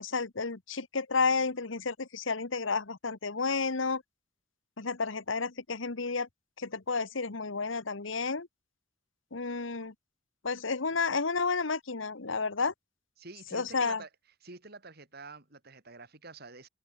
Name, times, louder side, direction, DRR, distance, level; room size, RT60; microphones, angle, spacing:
voice 1, 0.0-4.0 4.8-6.3 6.6-8.5 9.3-9.9 10.4-12.7 13.5-14.0, left 4 dB, 80° left, 1.3 m, -31 dB
voice 2, 13.2-14.1 14.4-16.7, right 3 dB, 55° right, 4.3 m, -48 dB
open air
head